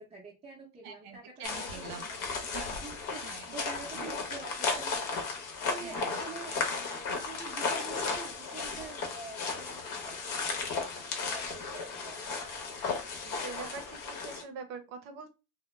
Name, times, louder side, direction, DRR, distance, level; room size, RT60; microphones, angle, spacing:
voice 1, 0.0-2.4 2.8-3.2 3.5-5.2 5.7-12.2, right 3 dB, 15° right, -5 dB, 0.6 m, -47 dB
voice 2, 0.8-2.1 2.4-3.6 4.0-4.1 5.8-6.2 13.1-15.3, right 5 dB, 80° right, 6 dB, 0.6 m, -45 dB
sound 1, 1.4-14.4, left 4 dB, 55° left, 0.8 m, -35 dB
2.2 x 2.0 x 3.0 m, 0.29 s
cardioid pair, 125°, 39 cm